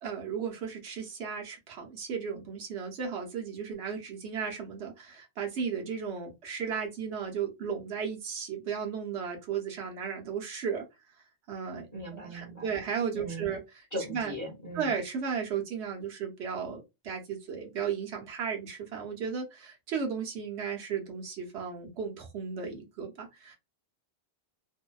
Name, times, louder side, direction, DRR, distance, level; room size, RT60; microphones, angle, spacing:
voice 1, 0.0-10.8 11.5-11.9 12.1-13.6 14.1-14.3 14.7-23.6, right 6 dB, 80° right, 1.0 m, -35 dB
voice 2, 11.9-12.8 13.1-13.5 13.9-14.9, right 1 dB, 20° left, 0.7 m, -39 dB
2.6 x 2.1 x 2.2 m
omnidirectional pair, 1.1 m